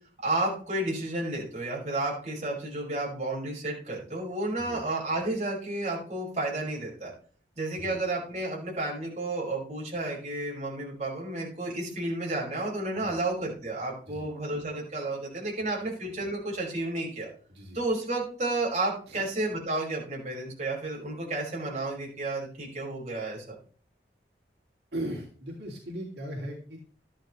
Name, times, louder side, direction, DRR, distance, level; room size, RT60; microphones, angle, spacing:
voice 1, 0.2-7.1 7.6-17.3 17.7-23.5, right 2 dB, 40° right, -3 dB, 5.5 m, -31 dB
voice 2, 24.9-26.8, right 1 dB, 75° right, -1 dB, 2.8 m, -38 dB
12.5 x 11.0 x 3.2 m, 0.43 s
head